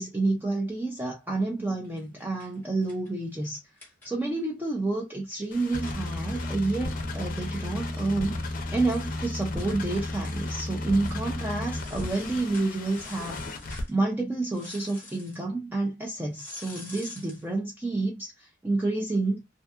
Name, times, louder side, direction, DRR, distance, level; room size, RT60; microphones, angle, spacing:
voice 1, 0.0-3.6 4.0-19.4, right 2 dB, 10° right, 0.4 m, -29 dB
sound 1, 1.8-4.5 4.8-4.9 5.1-8.3 8.6-8.7 8.9-9.1 9.6-9.8 10.2-10.6 11.0-11.2 11.7-13.9 14.5-15.4 16.3-17.5, left 2 dB, 10° left, 0.9 m, -49 dB
sound 2, 5.5-13.8, left 2 dB, 45° left, 0.5 m, -33 dB
2.6 x 2.3 x 2.3 m
head